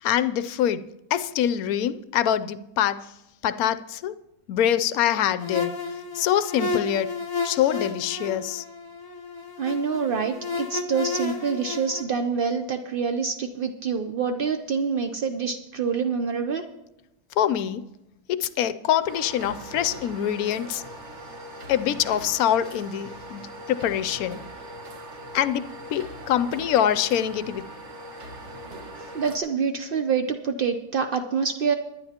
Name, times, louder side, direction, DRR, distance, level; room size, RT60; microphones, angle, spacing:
voice 1, 0.0-0.9 1.1-3.1 3.4-4.1 4.5-5.8 6.1-7.1 7.4-8.6 17.4-17.8 18.3-20.8 21.7-24.4 25.3-27.6, left 10 dB, 70° left, 13 dB, 0.9 m, -24 dB
sound 1, 5.4-12.0, left 4 dB, 25° left, 0.5 m, -32 dB
voice 2, 9.6-16.6 29.1-31.7, right 5 dB, 75° right, 6 dB, 0.5 m, -26 dB
sound 2, 19.1-29.4, right 1 dB, 45° right, 1.5 m, -41 dB
22.0 x 10.0 x 2.9 m, 0.90 s
omnidirectional pair, 1.7 m